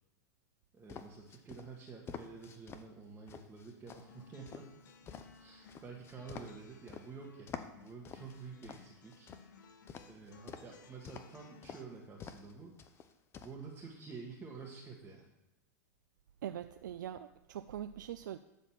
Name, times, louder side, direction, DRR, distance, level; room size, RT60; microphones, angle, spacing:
voice 1, 0.7-4.8 5.4-9.3 10.1-13.0 13.4-15.3, right 4 dB, 15° right, -3 dB, 1.8 m, -50 dB
sound 1, 0.9-2.8 3.3-7.1 7.5-9.4 9.9-10.7 11.0-11.4 11.6-11.8 12.2-12.5 12.8-13.5, left 7 dB, 25° left, 0.8 m, -48 dB
sound 2, 4.0-11.8, left 4 dB, 80° left, 1.2 m, -59 dB
voice 2, 16.4-18.4, right 10 dB, 85° right, 10 dB, 0.5 m, -42 dB
12.5 x 4.3 x 7.1 m, 0.97 s
supercardioid pair, 135°, 10 cm